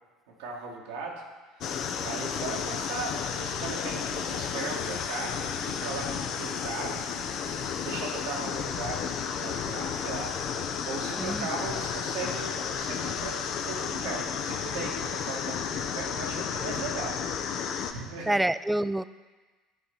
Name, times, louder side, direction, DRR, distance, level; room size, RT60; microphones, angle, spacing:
voice 1, 0.4-1.1 1.6-5.4 5.8-7.0 7.8-10.4 10.8-13.3 13.6-17.6 17.9-18.4, right 4 dB, 80° right, -3 dB, 1.6 m, -38 dB
sound 1, 1.6-17.9, left 7 dB, 55° left, 0.6 m, -32 dB
sound 2, 3.3-15.9, left 2 dB, 85° left, 1.4 m, -52 dB
voice 2, 11.2-11.5 18.3-19.0, right 1 dB, 10° right, 15 dB, 0.3 m, -27 dB
11.5 x 4.2 x 5.3 m, 1.3 s
hypercardioid pair, 65°, 0 cm